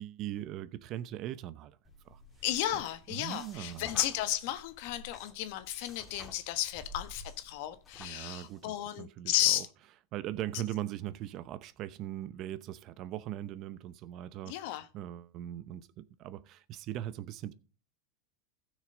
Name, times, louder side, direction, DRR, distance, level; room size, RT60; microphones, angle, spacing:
voice 1, 0.0-1.8 2.0-2.2 2.7-2.8 3.1-3.9 8.0-9.6 10.1-17.5, right 12 dB, 50° right, 0.7 m, -40 dB
sound 1, 1.9-8.7, left 3 dB, 20° left, 2.0 m, -51 dB
voice 2, 2.4-9.7 14.5-14.8, left 14 dB, 65° left, 1.2 m, -33 dB
15.0 x 6.4 x 3.8 m
supercardioid pair, 120°, 0 cm